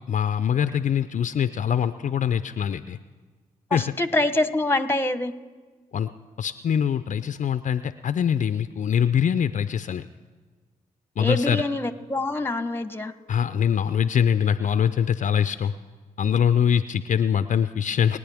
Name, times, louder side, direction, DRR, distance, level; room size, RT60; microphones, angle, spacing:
voice 1, 0.1-3.0 3.7-3.8 5.9-6.1 6.4-10.0 11.2-11.6 13.3-15.7 16.2-18.2, left 8 dB, 55° left, 12 dB, 0.5 m, -23 dB
voice 2, 3.7-5.3 11.2-13.1, left 2 dB, 15° left, 11 dB, 1.0 m, -25 dB
24.0 x 9.4 x 3.5 m, 1.4 s
supercardioid pair, 50°, 15 cm